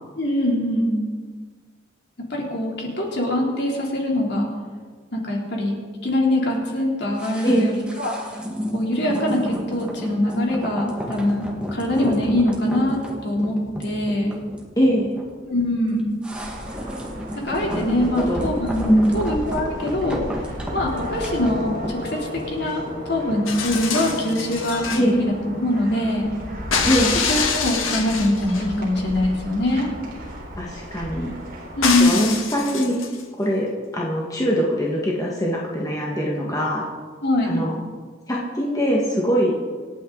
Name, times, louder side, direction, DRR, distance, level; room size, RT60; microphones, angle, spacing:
voice 1, 0.2-1.0 2.3-4.5 5.1-5.8 6.0-8.1 8.7-13.6 13.8-14.3 15.4-16.1 17.4-20.2 20.7-22.8 23.1-25.3 25.6-26.3 27.3-29.9 31.7-32.3 37.2-37.6, left 1 dB, 55° left, -2 dB, 3.4 m, -23 dB
sound 1, 7.2-24.4 24.7-24.8, equal, 5° right, 1.7 m, -33 dB
voice 2, 14.8-15.1 17.6-18.5 18.9-19.2 24.9-25.2 26.9-27.2 30.6-31.4 32.0-33.0 33.3-36.9 37.4-37.8 38.3-39.5, equal, 15° left, -4 dB, 1.7 m, -22 dB
sound 2, 16.3-31.9, equal, 50° right, 4.0 m, -34 dB
sound 3, 23.5-25.0 26.7-28.7 31.8-33.2 34.5-34.6, left 5 dB, 85° left, 1.9 m, -25 dB
26.5 x 9.1 x 4.0 m, 1.5 s
head